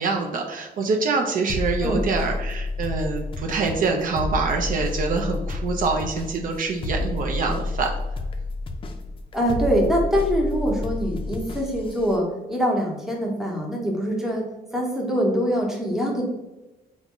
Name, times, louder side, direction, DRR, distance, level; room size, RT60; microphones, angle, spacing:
voice 1, 0.0-7.9, right 4 dB, 55° right, 2 dB, 0.4 m, -25 dB
sound 1, 1.5-12.2, left 2 dB, 35° left, 0.4 m, -30 dB
voice 2, 9.3-14.4 14.7-16.2, equal, 5° right, -1 dB, 0.8 m, -24 dB
3.5 x 2.0 x 3.6 m, 1.0 s
cardioid pair, 105°, 16 cm